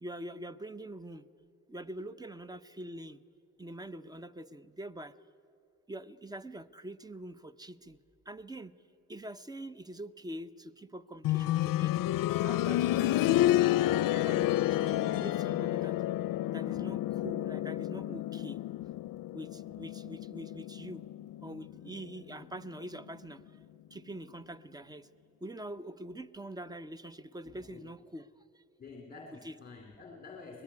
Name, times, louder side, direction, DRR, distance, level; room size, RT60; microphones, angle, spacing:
voice 1, 0.0-1.3 1.7-3.2 3.6-5.1 5.9-8.0 8.3-8.8 9.1-12.0 12.4-13.7 14.1-16.0 16.5-18.9 19.3-21.0 21.4-23.6 23.9-25.1 25.4-28.6 29.4-29.6, right 1 dB, 10° right, 14 dB, 0.7 m, -44 dB
sound 1, 11.2-22.0 23.4-23.5, left 14 dB, 85° left, 0.5 m, -30 dB
voice 2, 27.6-27.9 28.8-30.6, left 4 dB, 30° left, 1 dB, 2.7 m, -49 dB
24.5 x 20.0 x 9.7 m, 2.7 s
cardioid pair, 115°, 32 cm